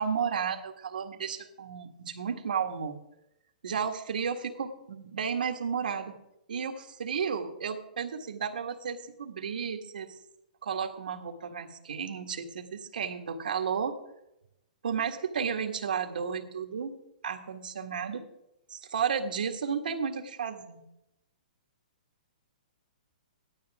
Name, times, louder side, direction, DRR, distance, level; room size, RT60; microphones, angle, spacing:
voice 1, 0.0-3.0 3.6-6.1 6.5-10.2 10.6-14.0 14.8-16.9 17.2-18.3 18.7-20.8, right 6 dB, 85° right, 4 dB, 1.8 m, -33 dB
15.5 x 12.0 x 3.6 m, 0.85 s
hypercardioid pair, 175°, 5 cm